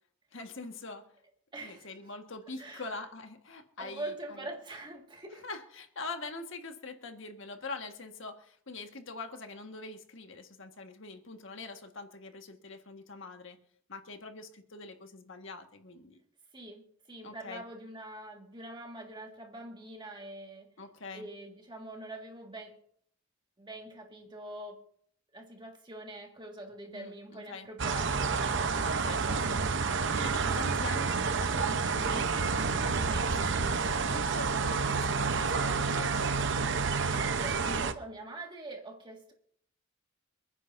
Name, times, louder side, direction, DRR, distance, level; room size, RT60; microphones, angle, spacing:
voice 1, 0.3-1.1 1.6-4.5 5.4-13.6 13.9-16.2 17.2-17.6 20.8-21.3 26.9-27.7 28.8-36.3, left 3 dB, 65° left, 5 dB, 1.6 m, -44 dB
voice 2, 1.5-2.1 2.6-2.9 3.8-5.5 16.5-20.7 21.1-22.8 23.6-24.8 25.3-28.3 37.1-39.3, right 1 dB, 20° right, 1 dB, 1.9 m, -44 dB
sound 1, 27.8-37.9, right 4 dB, 60° right, 0.9 m, -29 dB
28.5 x 9.9 x 2.7 m, 0.66 s
head